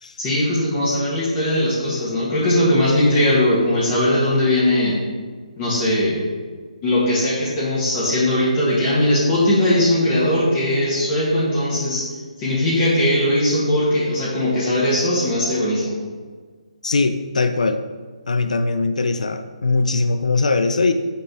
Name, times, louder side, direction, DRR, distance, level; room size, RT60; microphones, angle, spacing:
voice 1, 0.2-5.0 5.6-6.3 6.8-16.0, left 1 dB, 25° left, -8 dB, 1.9 m, -19 dB
voice 2, 16.8-17.8 18.3-20.9, left 3 dB, 75° left, 8 dB, 0.5 m, -20 dB
6.3 x 5.5 x 4.8 m, 1.5 s
figure-of-eight pair, 145°, 4 cm